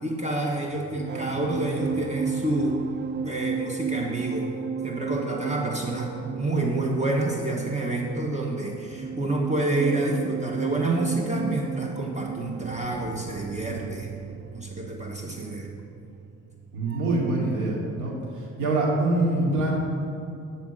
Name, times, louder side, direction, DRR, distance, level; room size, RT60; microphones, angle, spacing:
voice 1, 0.0-2.8 3.2-4.5 4.8-14.1 14.5-15.7, right 2 dB, 25° right, 0 dB, 1.2 m, -28 dB
sound 1, 0.7-17.4 17.6-18.0, right 6 dB, 40° right, 0.4 m, -34 dB
voice 2, 16.7-19.7, right 2 dB, 85° right, -3 dB, 2.5 m, -25 dB
11.5 x 4.4 x 7.7 m, 2.6 s
cardioid pair, 90°, 30 cm